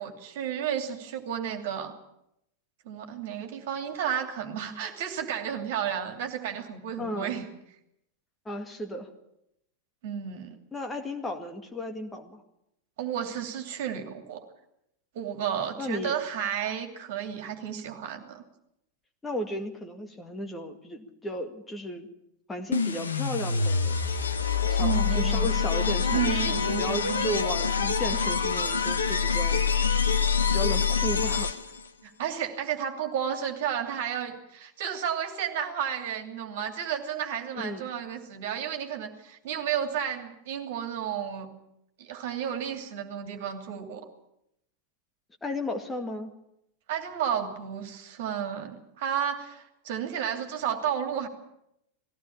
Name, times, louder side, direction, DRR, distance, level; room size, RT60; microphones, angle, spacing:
voice 1, 0.0-1.9 2.8-7.4 10.0-10.6 13.0-14.4 15.1-18.4 24.8-25.5 26.1-27.4 32.0-41.5 42.0-44.1 46.9-51.3, right 9 dB, 55° right, 5 dB, 2.7 m, -32 dB
voice 2, 7.0-7.3 8.5-9.1 10.7-12.4 15.8-16.2 19.2-22.1 22.5-24.0 24.6-29.7 30.5-31.5 37.5-37.9 45.4-46.3, left 1 dB, 10° left, 4 dB, 2.0 m, -34 dB
sound 1, 22.7-31.9, left 6 dB, 75° left, 1.2 m, -26 dB
19.5 x 16.0 x 8.6 m, 0.81 s
figure-of-eight pair, 90°, 0 cm